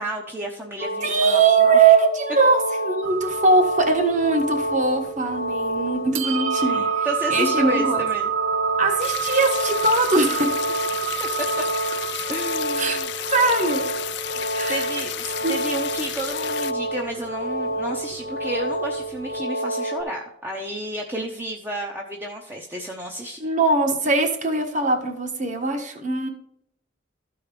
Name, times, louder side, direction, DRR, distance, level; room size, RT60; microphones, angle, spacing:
voice 1, 0.0-1.8 6.6-8.3 11.2-11.5 12.3-13.1 14.7-23.4, equal, 10° right, 0 dB, 0.8 m, -31 dB
sound 1, 0.8-20.0, equal, 60° right, 2.9 m, -29 dB
voice 2, 1.0-8.0 8.8-10.6 12.8-13.0 13.3-13.9 14.5-14.9 15.4-15.5 23.4-26.3, right 4 dB, 40° right, 5 dB, 1.5 m, -21 dB
sound 2, 3.0-19.4, right 10 dB, 85° right, 0.7 m, -30 dB
sound 3, 9.0-16.7, left 12 dB, 55° left, 0.4 m, -32 dB
13.5 x 4.8 x 5.0 m, 0.77 s
head